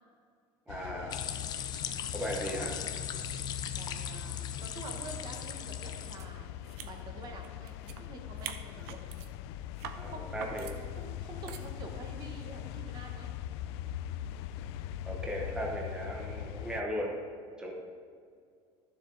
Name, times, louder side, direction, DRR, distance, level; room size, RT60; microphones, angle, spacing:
sound 1, 0.7-16.8, left 11 dB, 85° left, 0.4 m, -41 dB
voice 1, 0.7-1.3 2.1-2.8 9.9-10.7 15.1-17.2 17.6-17.7, equal, 5° right, -1 dB, 1.0 m, -37 dB
sound 2, 1.1-6.2, left 9 dB, 30° left, 0.6 m, -39 dB
voice 2, 2.5-3.0 3.7-6.5 6.8-9.0 10.1-13.4, right 2 dB, 35° right, 3 dB, 1.1 m, -47 dB
sound 3, 6.2-6.3 6.6-8.0 8.3-9.3 9.8-10.0 10.4-10.8 11.5-11.7, right 9 dB, 80° right, 0.8 m, -44 dB
12.5 x 7.1 x 3.9 m, 2.3 s
cardioid pair, 160°, 13 cm